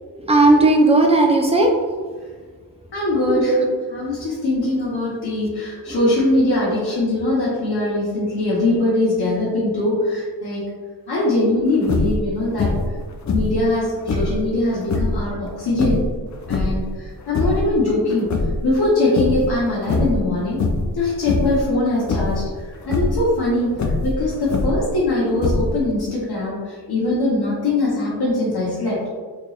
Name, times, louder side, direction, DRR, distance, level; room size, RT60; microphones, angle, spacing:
voice 1, 0.1-1.7 3.3-3.7 5.9-6.1, right 2 dB, 15° right, 0 dB, 0.4 m, -16 dB
voice 2, 2.9-3.6 3.9-10.6 11.1-12.7 13.3-16.0 16.5-18.3 18.6-20.6 20.9-22.4 22.9-23.7 24.0-29.0, left 2 dB, 70° left, -7 dB, 1.1 m, -21 dB
sound 1, 11.8-12.2 12.6-13.0 13.2-14.4 14.8-15.2 15.7-16.9 17.2-17.7 18.1-18.9 19.2-19.5 19.8-20.2 20.6-20.9 21.2-21.6 22.1-22.4 22.8-23.2 23.7-24.9 25.4-25.9, left 3 dB, 45° left, 0.5 m, -22 dB
4.4 x 3.0 x 2.4 m, 1.5 s
wide cardioid pair, 150°, 40 cm